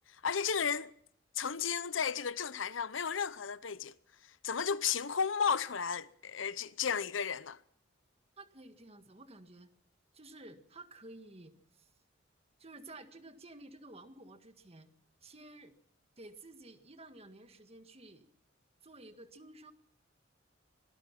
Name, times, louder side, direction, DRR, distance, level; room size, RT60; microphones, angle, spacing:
voice 1, 0.2-0.9 1.3-3.9 4.4-7.6, left 6 dB, 80° left, 0.8 m, -33 dB
voice 2, 8.4-9.7 10.1-11.9 12.6-14.9 15.2-15.8 16.2-18.3 18.8-19.7, right 2 dB, 35° right, 1.7 m, -52 dB
25.5 x 18.5 x 5.9 m
head